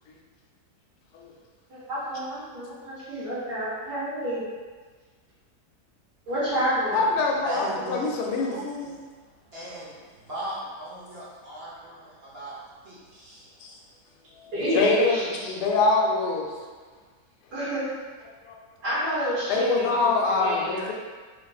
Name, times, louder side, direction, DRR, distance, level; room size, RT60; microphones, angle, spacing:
voice 1, 1.7-4.4 6.3-7.2 14.5-15.3 17.5-17.9 18.8-20.0 20.4-20.9, equal, 90° right, -10 dB, 1.9 m, -29 dB
voice 2, 6.9-8.5 14.7-16.5 18.5-18.6 19.5-20.9, left 3 dB, 85° left, -1 dB, 1.1 m, -24 dB
voice 3, 7.4-13.5, equal, 55° right, -8 dB, 0.7 m, -38 dB
3.7 x 2.5 x 2.3 m, 1.4 s
omnidirectional pair, 1.7 m